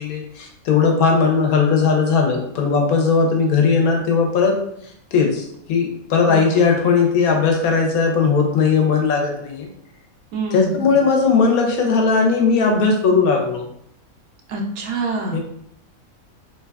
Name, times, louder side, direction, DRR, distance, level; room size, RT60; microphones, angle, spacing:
voice 1, 0.0-4.6 5.1-9.7 10.5-13.7 15.3-15.4, left 5 dB, 90° left, 2 dB, 1.1 m, -18 dB
voice 2, 6.2-6.6 10.3-10.8 14.5-15.4, right 2 dB, 85° right, 1 dB, 1.1 m, -25 dB
3.0 x 2.3 x 2.2 m, 0.72 s
omnidirectional pair, 1.5 m